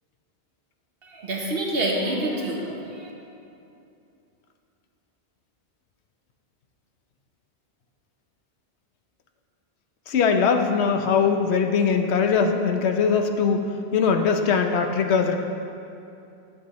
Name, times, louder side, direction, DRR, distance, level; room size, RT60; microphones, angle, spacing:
voice 1, 1.0-3.1, right 1 dB, 60° right, -1 dB, 1.3 m, -27 dB
voice 2, 10.1-13.6 13.9-15.4, left 5 dB, 75° left, 5 dB, 0.9 m, -21 dB
11.0 x 7.6 x 3.0 m, 2.7 s
omnidirectional pair, 1.2 m